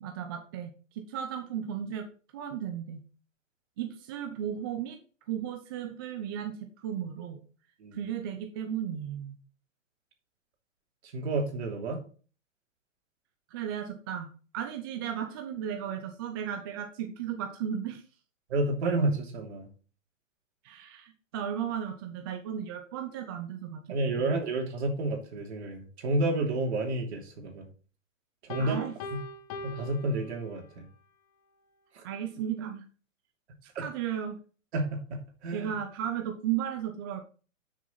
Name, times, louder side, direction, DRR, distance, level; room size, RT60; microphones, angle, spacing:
voice 1, 0.0-2.1 2.3-3.0 3.8-5.0 5.3-7.4 7.9-9.4 13.5-18.0 20.6-23.8 24.2-24.4 28.6-28.9 32.0-32.8 33.6-34.4 35.5-37.2, right 9 dB, 20° right, 6 dB, 0.5 m, -35 dB
voice 2, 11.1-12.0 18.5-19.7 23.9-27.7 28.4-28.8 29.1-29.2 29.6-30.9 31.9-32.0 33.7-33.9 34.7-35.7, right 2 dB, 55° right, 2 dB, 3.1 m, -30 dB
Piano, 28.5-30.9, left 2 dB, 25° left, 0.9 m, -42 dB
10.5 x 6.4 x 3.9 m, 0.39 s
hypercardioid pair, 150°, 39 cm